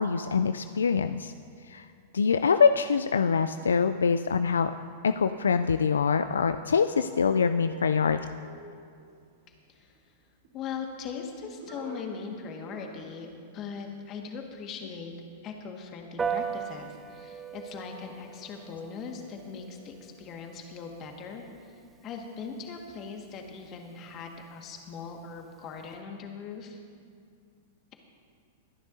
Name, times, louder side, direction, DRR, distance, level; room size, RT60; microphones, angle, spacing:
voice 1, 0.0-1.3 1.7-1.8 2.1-4.7 5.0-8.2, left 6 dB, 80° left, 10 dB, 0.3 m, -24 dB
sound 1, 6.7-9.2 10.4-11.0 11.4-12.2 12.6-13.1 13.4-13.5, right 2 dB, 60° right, 3.4 m, -46 dB
voice 2, 10.5-15.1 15.4-21.7 22.0-26.8, left 5 dB, 35° left, 2 dB, 1.7 m, -40 dB
Piano, 16.2-25.9, right 6 dB, 15° right, 0.8 m, -40 dB
22.5 x 10.0 x 2.7 m, 2.3 s
hypercardioid pair, 105°, 0 cm